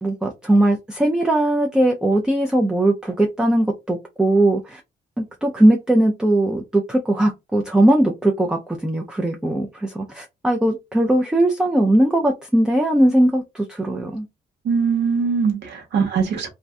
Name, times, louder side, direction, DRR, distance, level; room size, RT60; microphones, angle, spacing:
voice 1, 0.0-4.8 5.2-14.3, right 1 dB, 5° right, 0.3 m, -19 dB
voice 2, 14.6-16.5, right 5 dB, 85° right, 1.1 m, -21 dB
2.5 x 2.1 x 3.5 m
cardioid pair, 150°, 17 cm